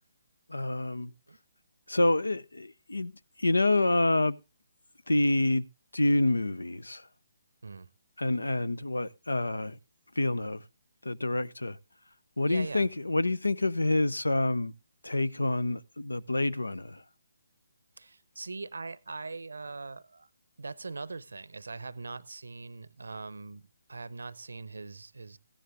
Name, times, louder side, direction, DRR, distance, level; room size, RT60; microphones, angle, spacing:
voice 1, 0.5-1.1 1.9-3.1 3.4-4.4 5.1-5.7 5.9-7.1 8.2-9.8 10.2-10.6 11.0-11.8 12.4-14.7 15.0-17.0, left 2 dB, 80° left, 0.7 m, -27 dB
voice 2, 12.4-12.9 18.0-20.3 20.6-25.4, right 3 dB, 70° right, 0.8 m, -41 dB
15.0 x 10.0 x 3.6 m
figure-of-eight pair, 140°, 0 cm